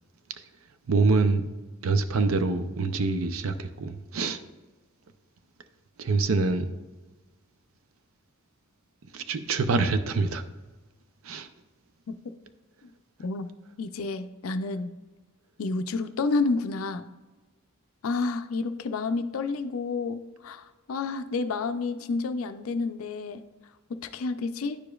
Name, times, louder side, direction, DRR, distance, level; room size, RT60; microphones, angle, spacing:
voice 1, 0.9-1.5 1.8-4.4 6.0-6.7 9.1-10.4 11.2-11.5, right 3 dB, 75° right, 0.5 m, -25 dB
voice 2, 13.8-14.9 15.6-17.1 18.0-23.4 23.9-24.8, left 3 dB, 80° left, 0.4 m, -30 dB
10.5 x 4.9 x 2.3 m
head